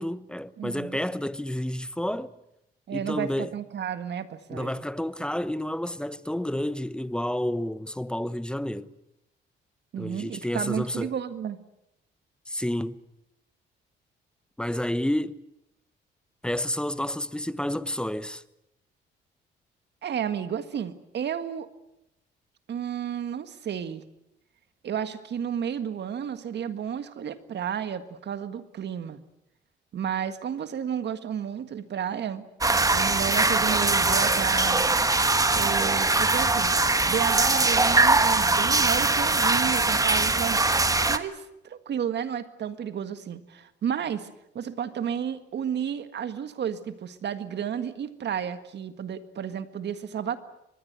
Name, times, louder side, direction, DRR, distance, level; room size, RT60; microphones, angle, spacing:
voice 1, 0.0-2.3 2.9-3.5 4.5-8.9 10.0-11.1 12.5-13.0 14.6-15.4 16.4-18.4, left 1 dB, 5° left, 0.9 m, -30 dB
voice 2, 0.6-1.0 2.9-4.8 9.9-11.6 20.0-21.7 22.7-24.0 24.8-29.2 29.9-32.5 32.9-34.9 35.5-36.7 37.1-40.6 41.1-44.3 44.6-50.4, right 8 dB, 60° right, 1.8 m, -32 dB
sound 1, 32.6-41.2, right 3 dB, 15° right, 1.3 m, -22 dB
25.0 x 21.0 x 8.2 m
cardioid pair, 90°, 20 cm